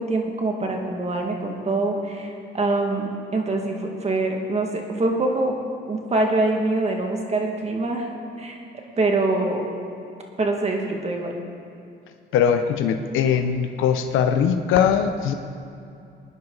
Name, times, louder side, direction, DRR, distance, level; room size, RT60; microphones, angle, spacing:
voice 1, 0.0-5.5 5.9-8.1 8.4-8.6 9.0-9.6 10.4-11.3, right 2 dB, 35° right, 1 dB, 2.0 m, -24 dB
voice 2, 12.3-15.3, left 8 dB, 90° left, 7 dB, 0.7 m, -21 dB
19.5 x 9.8 x 4.0 m, 2.6 s
cardioid pair, 90°, 20 cm